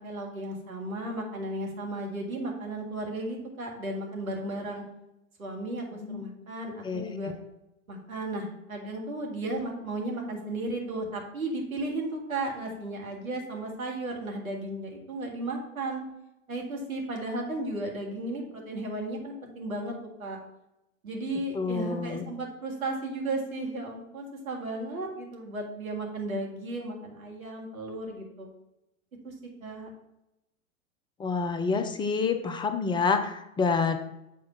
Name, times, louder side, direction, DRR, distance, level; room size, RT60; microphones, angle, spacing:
voice 1, 0.0-4.8 5.4-7.3 7.9-16.0 16.5-19.9 20.2-20.4 21.0-28.5 29.2-29.3 29.6-29.9, right 2 dB, 80° right, 0 dB, 2.1 m, -34 dB
voice 2, 21.5-22.2 31.2-34.0, left 5 dB, 10° left, 7 dB, 0.4 m, -28 dB
7.4 x 4.4 x 5.5 m, 0.88 s
figure-of-eight pair, 95°, 41 cm